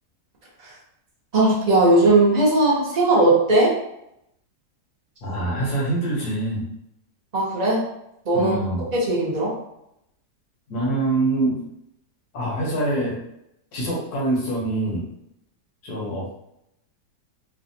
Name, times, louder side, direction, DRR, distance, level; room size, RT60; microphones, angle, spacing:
voice 1, 1.3-3.7 7.3-7.8 8.3-8.5 8.9-9.5, right 2 dB, 40° right, -5 dB, 0.6 m, -18 dB
voice 2, 5.2-6.6 8.3-8.9 10.7-11.6 12.3-13.2 13.7-15.1 15.8-16.3, right 2 dB, 75° left, -4 dB, 1.4 m, -25 dB
3.3 x 2.0 x 2.7 m, 0.79 s
omnidirectional pair, 1.7 m